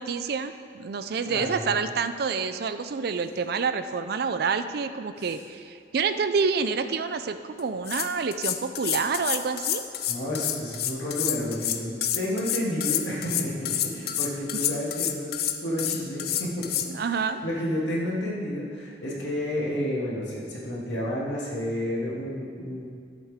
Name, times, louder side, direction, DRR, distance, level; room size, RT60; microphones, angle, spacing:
voice 1, 0.0-9.8 16.9-17.4, right 5 dB, 55° right, 10 dB, 0.4 m, -28 dB
voice 2, 1.2-1.7 5.2-5.3 10.1-22.8, left 1 dB, 80° left, -6 dB, 2.4 m, -31 dB
sound 1, 7.6-7.7 7.9-16.9, left 11 dB, 55° left, 0.5 m, -28 dB
12.5 x 7.6 x 3.6 m, 2.2 s
head